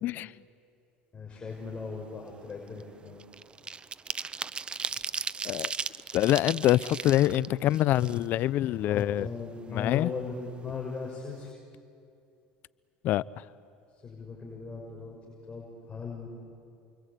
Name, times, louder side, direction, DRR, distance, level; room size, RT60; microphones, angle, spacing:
voice 1, 0.0-0.3 5.4-5.7 6.1-9.3 9.7-10.1 13.0-13.2, left 14 dB, 55° left, 20 dB, 0.6 m, -25 dB
voice 2, 1.1-3.2 8.8-11.5 14.0-15.2 15.4-16.3, left 4 dB, 25° left, -1 dB, 6.4 m, -38 dB
sound 1, 1.6-1.8 2.2-8.6 9.0-9.1 9.4-10.4 10.7-10.8 11.1-11.4, right 5 dB, 25° right, 0.7 m, -37 dB
29.5 x 23.5 x 8.4 m, 2.5 s
hypercardioid pair, 85°, 4 cm